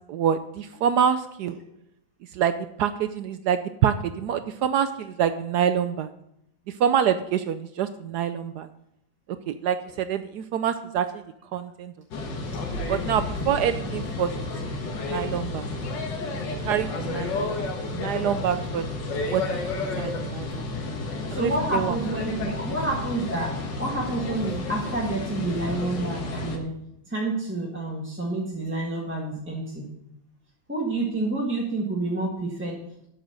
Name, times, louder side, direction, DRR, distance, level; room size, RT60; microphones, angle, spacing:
voice 1, 0.1-1.6 2.3-6.1 6.7-8.7 9.5-11.2 11.5-11.9 12.9-14.3 14.6-14.7 15.1-15.7 16.6-18.9 19.1-19.4 19.7-20.7 21.3-22.0, right 8 dB, 75° right, 11 dB, 0.9 m, -26 dB
sound 1, 12.1-26.6, left 3 dB, 65° left, 2.0 m, -31 dB
voice 2, 21.3-26.7 27.1-29.9 30.7-32.8, right 2 dB, 5° right, -4 dB, 1.4 m, -29 dB
8.7 x 6.3 x 8.0 m, 0.77 s
omnidirectional pair, 2.2 m